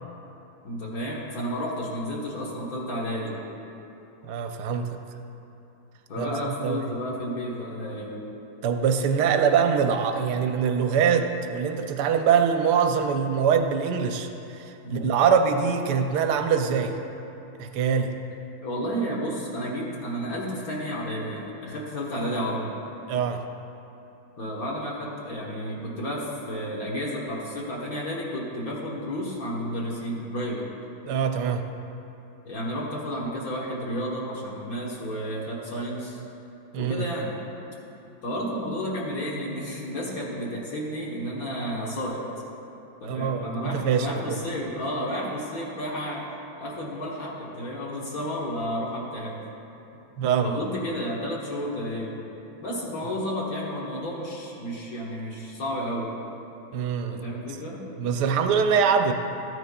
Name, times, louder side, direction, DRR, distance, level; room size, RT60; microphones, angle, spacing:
voice 1, 0.6-3.4 6.1-8.2 14.8-15.0 18.6-22.7 24.4-30.7 32.4-36.2 36.8-37.4 38.2-42.2 43.0-46.3 46.6-49.4 50.4-52.2 52.6-56.1 57.1-57.9, equal, 50° left, -4 dB, 1.5 m, -31 dB
voice 2, 4.3-4.9 6.2-6.9 8.6-17.0 17.6-18.1 23.1-23.4 31.1-31.6 36.7-37.1 43.0-44.4 50.2-50.6 56.7-57.2 58.0-59.1, right 6 dB, 70° right, 6 dB, 1.1 m, -24 dB
14.0 x 9.4 x 2.3 m, 2.9 s
omnidirectional pair, 2.1 m